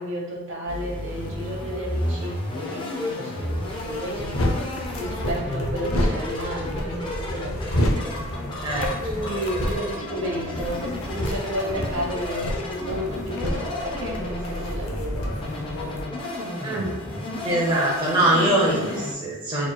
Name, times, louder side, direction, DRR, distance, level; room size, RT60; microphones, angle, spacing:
voice 1, 0.0-4.4 5.0-7.9 8.8-15.2 17.7-17.9, equal, 60° right, -2 dB, 0.9 m, -32 dB
sound 1, 0.7-19.1, left 1 dB, 20° left, 0.4 m, -32 dB
sound 2, 3.4-16.0, equal, 80° left, 0.6 m, -30 dB
voice 2, 16.6-17.0 17.4-19.7, right 1 dB, 20° right, -5 dB, 0.6 m, -23 dB
4.3 x 3.0 x 2.2 m, 1.1 s
head